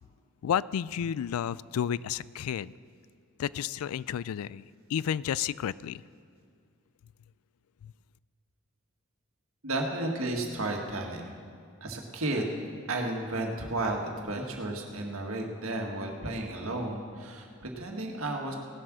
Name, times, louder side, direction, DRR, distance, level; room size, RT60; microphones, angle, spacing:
voice 1, 0.4-2.7 3.4-4.6 4.9-6.0 7.8-7.9, left 9 dB, 85° left, 20 dB, 0.3 m, -31 dB
voice 2, 9.6-11.3 11.8-12.6 12.9-18.5, right 2 dB, 80° right, 1 dB, 1.8 m, -33 dB
18.0 x 7.7 x 6.2 m, 2.2 s
head